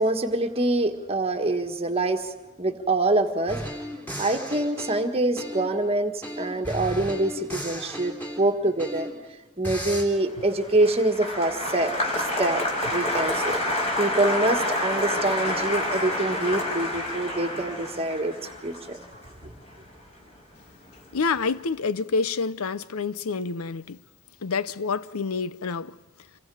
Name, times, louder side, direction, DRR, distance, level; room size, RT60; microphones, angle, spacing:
voice 1, 0.0-2.3 2.6-3.6 4.2-9.1 9.6-11.9 12.4-12.6 12.9-13.5 14.0-18.3 18.6-19.0, right 2 dB, 25° right, 1.6 m, -25 dB
sound 1, 3.5-5.8 6.2-9.3 9.6-10.0, equal, 10° left, 3.5 m, -35 dB
Applause, 10.2-20.6 20.9-21.5, left 1 dB, 30° left, 5.0 m, -28 dB
voice 2, 21.1-24.0 24.4-26.0, left 4 dB, 75° left, 0.7 m, -28 dB
28.5 x 23.0 x 4.9 m
head